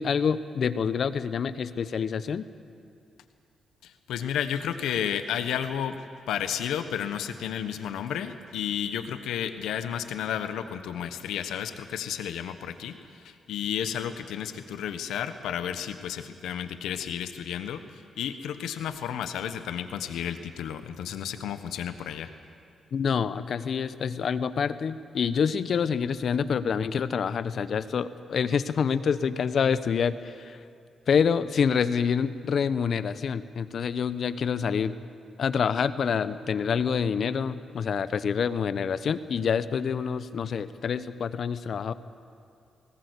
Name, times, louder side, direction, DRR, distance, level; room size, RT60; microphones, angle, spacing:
voice 1, 0.0-2.4 22.9-30.6 31.1-34.9 35.4-41.9, left 6 dB, 60° left, 13 dB, 0.8 m, -27 dB
voice 2, 3.8-6.0 6.3-22.3, left 9 dB, 90° left, 9 dB, 1.2 m, -32 dB
19.5 x 19.0 x 8.3 m, 2.5 s
cardioid pair, 75°, 0 cm